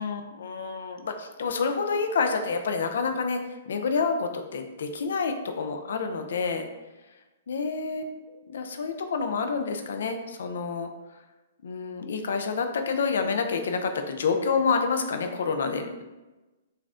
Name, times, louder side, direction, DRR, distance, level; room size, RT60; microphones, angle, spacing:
voice 1, 0.0-3.4 3.7-6.7 7.5-10.9 11.6-16.0, left 5 dB, 75° left, 6 dB, 0.3 m, -28 dB
3.3 x 2.3 x 2.5 m, 1.1 s
hypercardioid pair, 145°, 0 cm